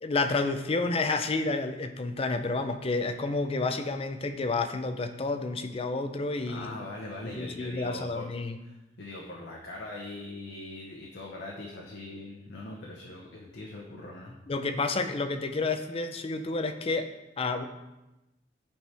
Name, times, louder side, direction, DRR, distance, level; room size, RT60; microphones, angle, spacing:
voice 1, 0.0-6.8 7.3-8.6 14.5-17.1 17.4-17.6, left 3 dB, 35° left, 7 dB, 0.5 m, -30 dB
voice 2, 6.5-8.3 8.6-14.4, left 2 dB, 75° left, -2 dB, 0.9 m, -41 dB
8.4 x 4.6 x 3.4 m, 0.98 s
head